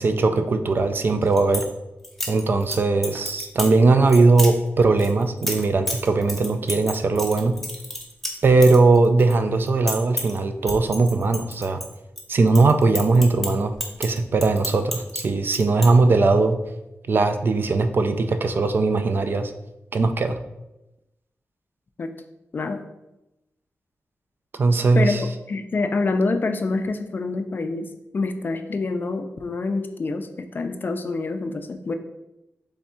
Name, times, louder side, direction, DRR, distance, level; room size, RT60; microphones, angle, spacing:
voice 1, 0.0-1.7 2.3-7.6 8.4-11.8 12.3-13.7 14.0-16.6 17.1-19.5 19.9-20.4 24.6-25.3, right 3 dB, 45° right, 9 dB, 0.3 m, -19 dB
sound 1, 1.1-1.7 2.0-2.8 3.0-3.7 4.1-4.5 5.0-9.3 9.6-10.4 10.7-12.2 12.5-15.2 15.5-15.9, left 1 dB, 5° left, 0.7 m, -30 dB
voice 2, 25.0-27.9 28.1-31.9, left 3 dB, 45° left, 7 dB, 0.4 m, -26 dB
3.5 x 3.4 x 4.2 m, 0.93 s
wide cardioid pair, 125°, 5 cm